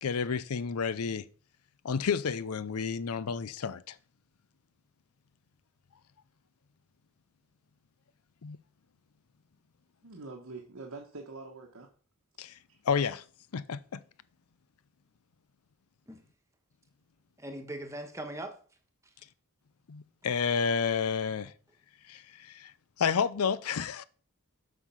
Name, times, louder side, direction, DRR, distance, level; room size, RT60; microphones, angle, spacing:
voice 1, 0.0-1.2 1.8-4.0 8.4-8.6 12.4-12.5 12.9-13.2 13.5-14.0 19.9-21.5 22.1-22.7 23.0-24.0, left 6 dB, 90° left, 0.6 m, -30 dB
voice 2, 10.0-11.9 12.7-12.8, right 3 dB, 85° right, 1.4 m, -45 dB
voice 3, 17.4-18.6, right 1 dB, 15° right, 1.3 m, -40 dB
7.4 x 5.6 x 5.7 m
head